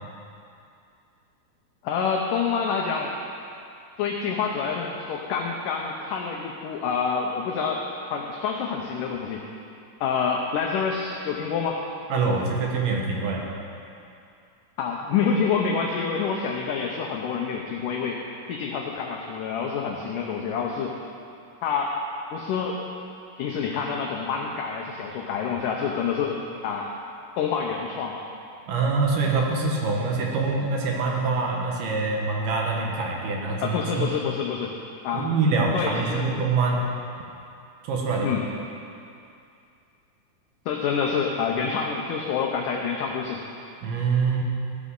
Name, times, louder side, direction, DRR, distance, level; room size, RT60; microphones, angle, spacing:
voice 1, 1.8-3.1 4.0-9.4 10.0-11.8 14.8-18.2 18.5-20.9 21.6-22.0 22.3-22.8 23.4-26.9 27.4-28.2 33.6-34.7 35.0-35.3 35.7-36.3 38.2-38.4 40.7-43.4, left 6 dB, 75° left, 0 dB, 2.0 m, -27 dB
voice 2, 12.1-13.5 28.7-34.1 35.1-36.9 37.8-38.3 43.8-44.4, right 4 dB, 75° right, -1 dB, 3.2 m, -25 dB
15.0 x 11.0 x 3.8 m, 2.5 s
omnidirectional pair, 4.4 m